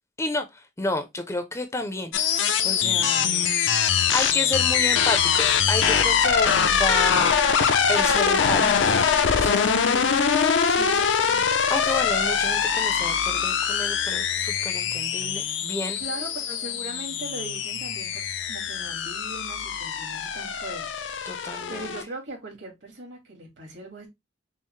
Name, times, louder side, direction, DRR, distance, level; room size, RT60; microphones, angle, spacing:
voice 1, 0.2-7.3 7.9-8.6 8.9-9.1 9.4-9.7 11.7-16.0 21.3-21.9, left 2 dB, 15° left, 0.5 m, -31 dB
sound 1, 2.1-22.0, left 7 dB, 85° left, 0.5 m, -23 dB
voice 2, 9.8-10.2 10.7-11.5 15.2-15.7 16.0-18.2 18.5-21.1 21.7-24.1, right 2 dB, 70° right, 1.9 m, -39 dB
5.4 x 2.0 x 3.1 m
head